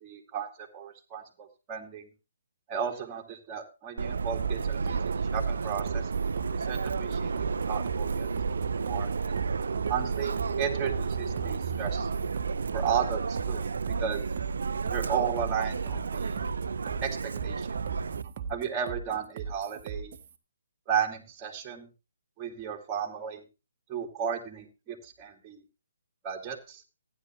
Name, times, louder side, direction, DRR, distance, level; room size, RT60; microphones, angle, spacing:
voice 1, 0.0-2.1 2.7-5.0 5.3-6.1 6.5-7.3 7.7-8.3 8.5-9.4 9.9-12.1 12.7-13.6 14.0-14.2 14.9-16.4 17.0-17.7 18.5-20.1 20.9-21.9 22.4-23.5 23.9-25.6 26.2-26.8, right 7 dB, 20° right, 0 dB, 2.3 m, -34 dB
Subway metro underground, 4.0-18.2, right 5 dB, 70° right, 0.5 m, -32 dB
sound 1, 4.4-20.3, right 6 dB, 40° right, 1.3 m, -38 dB
15.0 x 10.0 x 3.0 m, 0.28 s
hypercardioid pair, 145°, 0 cm